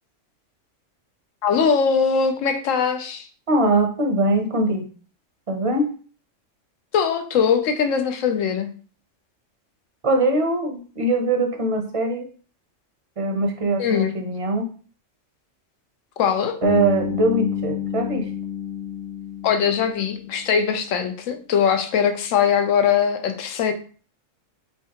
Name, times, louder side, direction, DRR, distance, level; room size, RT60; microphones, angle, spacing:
voice 1, 1.4-3.3 6.9-8.7 13.8-14.2 16.2-16.6 19.4-23.7, left 7 dB, 85° left, 7 dB, 1.0 m, -21 dB
voice 2, 3.5-4.9 5.5-5.9 10.0-12.3 13.2-14.7 16.6-18.3, right 2 dB, 35° right, 3 dB, 0.6 m, -22 dB
Bass guitar, 16.6-20.6, left 8 dB, 60° left, 0.9 m, -29 dB
4.6 x 3.1 x 2.8 m, 0.41 s
omnidirectional pair, 1.3 m